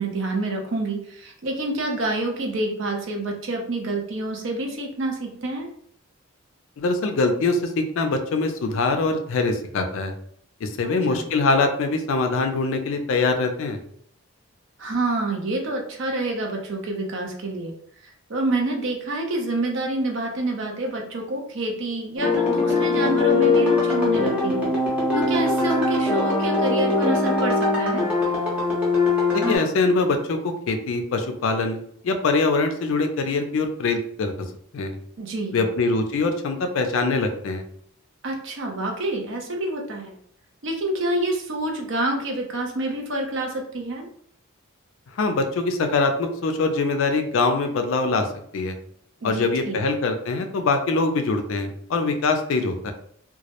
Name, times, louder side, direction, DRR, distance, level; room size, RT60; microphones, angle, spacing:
voice 1, 0.0-5.7 10.8-11.2 14.8-17.7 18.0-24.7 25.1-28.1 35.2-35.6 38.2-40.1 40.6-44.1 49.2-49.8, right 2 dB, 55° right, 1 dB, 0.5 m, -27 dB
voice 2, 6.8-10.1 10.6-13.8 29.3-34.3 34.7-35.0 35.5-37.6 45.1-48.3 48.5-48.8 49.2-52.9, left 3 dB, 65° left, 6 dB, 0.3 m, -23 dB
sound 1, 22.2-29.6, left 3 dB, 5° right, 0.6 m, -21 dB
2.2 x 2.0 x 2.8 m, 0.64 s
head